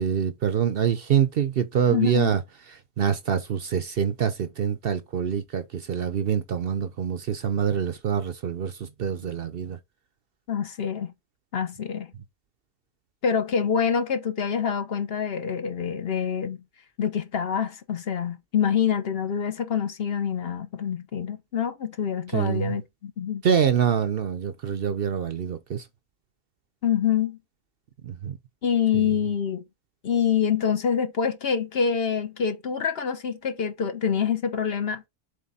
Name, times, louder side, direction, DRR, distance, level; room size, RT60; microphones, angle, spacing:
voice 1, 0.0-2.4 3.0-9.8 22.3-22.8 23.4-25.8 28.0-28.4 28.9-29.1, right 8 dB, 55° right, 0.7 m, -25 dB
voice 2, 1.9-2.3 10.5-11.1 11.5-12.1 13.2-16.6 17.0-23.4 26.8-27.4 28.6-29.6 30.0-35.1, left 7 dB, 55° left, 1.0 m, -26 dB
7.5 x 3.4 x 4.1 m
omnidirectional pair, 1.3 m